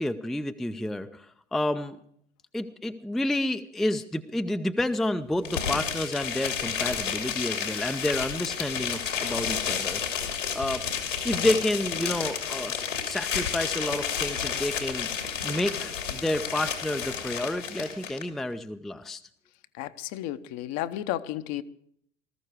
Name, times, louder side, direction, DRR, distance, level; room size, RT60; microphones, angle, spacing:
voice 1, 0.0-2.0 2.5-10.8 11.2-15.1 15.4-19.2, left 1 dB, ahead, 0.5 m, -30 dB
sound 1, 5.4-18.2, left 7 dB, 80° left, 2.9 m, -31 dB
voice 2, 19.8-21.6, left 13 dB, 45° left, 0.9 m, -32 dB
19.0 x 14.0 x 4.9 m
figure-of-eight pair, 80°, 37 cm